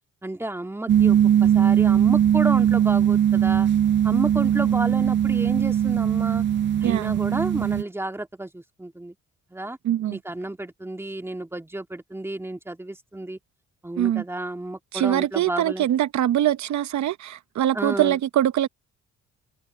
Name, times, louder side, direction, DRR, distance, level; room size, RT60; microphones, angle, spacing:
voice 1, 0.2-3.7 4.0-6.4 6.8-9.2 9.5-9.8 10.1-13.4 13.8-15.9 17.7-18.2, right 1 dB, 10° right, 2.0 m, -31 dB
sound 1, 0.9-7.8, right 10 dB, 40° right, 0.4 m, -20 dB
voice 2, 6.8-7.1 9.8-10.2 14.0-14.2 14.9-18.7, right 12 dB, 70° right, 0.9 m, -23 dB
cardioid pair, 90°, 30 cm